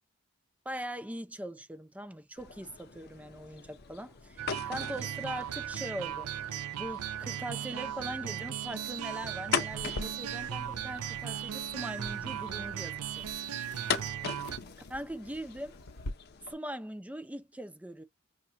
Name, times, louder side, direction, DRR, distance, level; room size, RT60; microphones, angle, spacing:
voice 1, 0.6-6.3 6.8-13.3 14.9-15.8 16.4-18.0, equal, 5° right, 0.5 m, -41 dB
sound 1, 2.4-16.5, left 6 dB, 45° left, 0.8 m, -41 dB
sound 2, 4.4-14.6, right 10 dB, 75° right, 0.4 m, -37 dB
sound 3, 9.7-16.1, left 1 dB, 85° left, 0.8 m, -47 dB
5.6 x 2.4 x 2.9 m
head